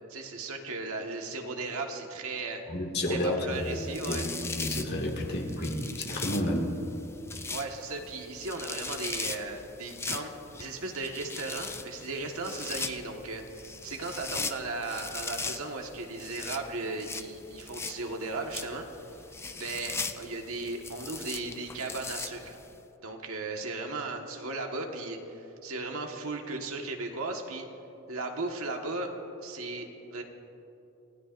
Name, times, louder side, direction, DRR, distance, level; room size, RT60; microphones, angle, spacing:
voice 1, 0.1-2.6 3.1-4.3 7.5-18.8 19.5-22.6 23.0-27.6 28.1-29.1 29.4-30.2, right 3 dB, 75° right, 2 dB, 1.6 m, -36 dB
voice 2, 2.7-3.8 4.1-6.8, left 1 dB, 50° left, -1 dB, 2.1 m, -31 dB
sound 1, 3.6-22.7, left 4 dB, 10° left, 0.4 m, -40 dB
29.0 x 16.5 x 2.6 m, 3.0 s
head